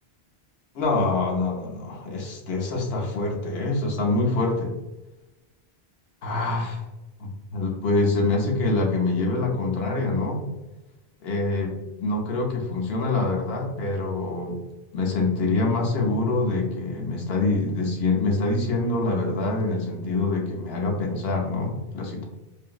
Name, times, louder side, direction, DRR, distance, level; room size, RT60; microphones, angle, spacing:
voice 1, 0.7-4.7 6.2-6.8 7.2-10.4 11.2-11.7 12.0-14.6 14.9-22.2, left 2 dB, 75° left, 1 dB, 0.9 m, -25 dB
2.9 x 2.5 x 2.3 m, 1.0 s
omnidirectional pair, 1.1 m